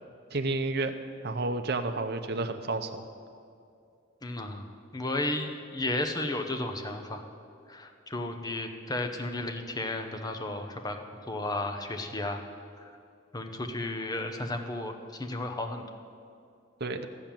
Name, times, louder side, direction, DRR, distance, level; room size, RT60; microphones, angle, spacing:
voice 1, 0.3-0.9 1.2-3.0 16.8-17.1, right 3 dB, 55° right, 6 dB, 0.7 m, -30 dB
voice 2, 4.2-4.7 4.9-7.3 7.7-11.0 11.3-12.4 12.8-12.9 13.3-15.8, left 2 dB, 20° left, 5 dB, 0.8 m, -33 dB
13.5 x 7.1 x 9.0 m, 2.5 s
head